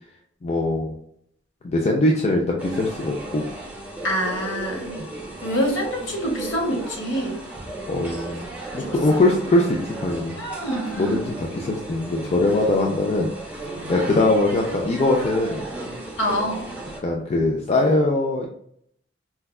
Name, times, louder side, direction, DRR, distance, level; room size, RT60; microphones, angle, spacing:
voice 1, 0.4-0.9 1.6-3.5 5.0-5.1 7.9-8.5 8.7-10.4 10.9-15.6 17.0-18.5, left 2 dB, 35° left, 0 dB, 0.4 m, -22 dB
sound 1, 2.6-17.0, right 2 dB, 5° right, 0.7 m, -35 dB
voice 2, 4.0-5.0 5.4-7.4 8.7-8.9 10.4-11.2 16.2-16.7, equal, 60° left, -1 dB, 1.1 m, -26 dB
4.4 x 2.2 x 2.3 m, 0.68 s
head